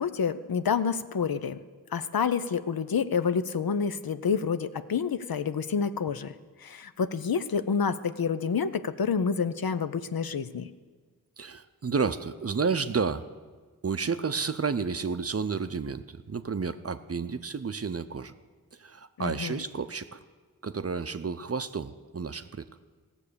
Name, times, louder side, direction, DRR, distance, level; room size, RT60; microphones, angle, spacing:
voice 1, 0.0-1.6 1.9-6.3 6.6-10.7 19.2-19.6, left 6 dB, 75° left, 12 dB, 0.6 m, -28 dB
voice 2, 11.4-13.3 13.8-18.3 18.7-20.2 20.6-22.7, right 5 dB, 40° right, 11 dB, 0.5 m, -31 dB
17.0 x 7.0 x 6.8 m, 1.4 s
wide cardioid pair, 55°, 36 cm